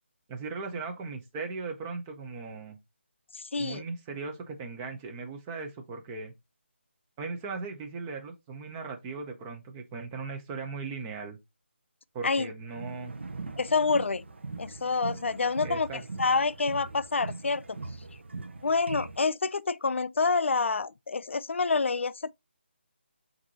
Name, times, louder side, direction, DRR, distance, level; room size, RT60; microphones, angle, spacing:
voice 1, 0.3-2.8 3.6-6.3 7.2-11.4 12.1-13.1 15.6-16.0, right 4 dB, 10° right, 0.5 m, -38 dB
voice 2, 3.3-3.8 12.2-12.5 13.6-14.2 14.6-17.8 18.6-22.1, left 4 dB, 75° left, 0.3 m, -27 dB
sound 1, 12.7-19.2, right 3 dB, 65° right, 0.7 m, -41 dB
7.3 x 2.6 x 2.6 m
figure-of-eight pair, 165°, 7 cm